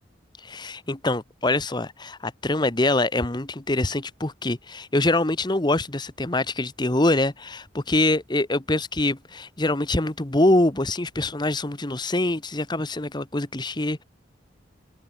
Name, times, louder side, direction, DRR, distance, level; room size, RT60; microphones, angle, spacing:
voice 1, 0.4-14.0, left 2 dB, 20° left, 1.1 m, -24 dB
open air
head